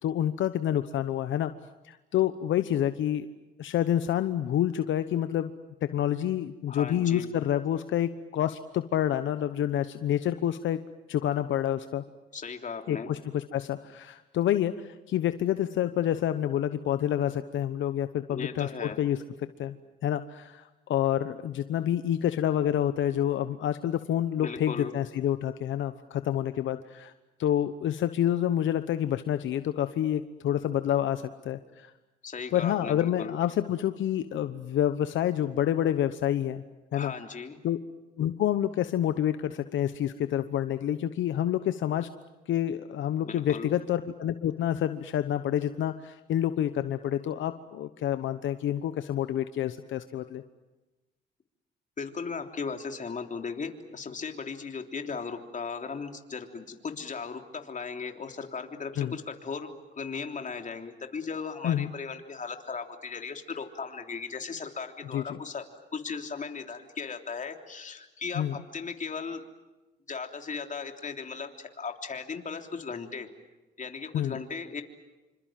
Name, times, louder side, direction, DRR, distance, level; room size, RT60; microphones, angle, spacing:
voice 1, 0.0-1.5 1.8-3.3 3.6-5.5 5.9-10.8 11.1-12.0 12.9-19.2 19.6-19.7 20.0-27.1 27.4-31.9 32.5-36.6 36.9-37.1 37.6-37.8 38.2-42.1 42.5-50.4 59.0-59.2 61.6-61.9 65.1-65.4 68.3-68.6 74.1-74.4, left 11 dB, 75° left, 11 dB, 1.0 m, -28 dB
voice 2, 6.7-7.3 12.3-13.1 18.3-19.0 24.4-24.9 32.2-33.4 36.9-37.6 43.2-43.7 52.0-65.6 65.9-69.4 70.1-73.3 73.8-74.8, left 5 dB, 40° left, 5 dB, 3.4 m, -37 dB
27.5 x 26.0 x 7.5 m, 1.1 s
cardioid pair, 90°, 20 cm